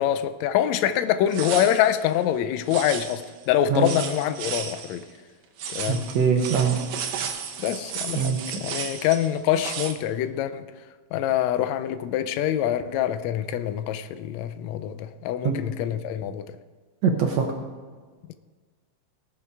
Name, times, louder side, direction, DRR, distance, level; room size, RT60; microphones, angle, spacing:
voice 1, 0.0-5.0 5.7-6.1 7.6-10.6 11.1-16.4, left 11 dB, 80° left, 1.6 m, -25 dB
sound 1, 1.3-2.0 2.7-3.4 3.8-5.0 5.6-9.9, right 7 dB, 85° right, 2.7 m, -34 dB
voice 2, 5.9-6.8 8.2-8.4 15.4-15.6 17.0-17.5, right 6 dB, 65° right, 1.9 m, -22 dB
19.0 x 7.0 x 4.7 m
omnidirectional pair, 3.7 m